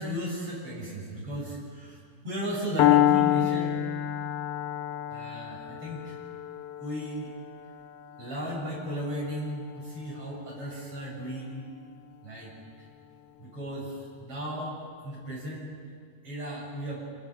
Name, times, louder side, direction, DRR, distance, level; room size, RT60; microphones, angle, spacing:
voice 1, 0.0-3.8 5.1-6.2 6.8-7.3 8.2-11.7 12.2-12.9 13.4-15.7 16.2-17.1, equal, 50° right, -5 dB, 8.6 m, -36 dB
Piano, 2.8-10.7, left 12 dB, 75° left, 1.5 m, -28 dB
27.5 x 23.0 x 5.5 m, 2.1 s
omnidirectional pair, 3.5 m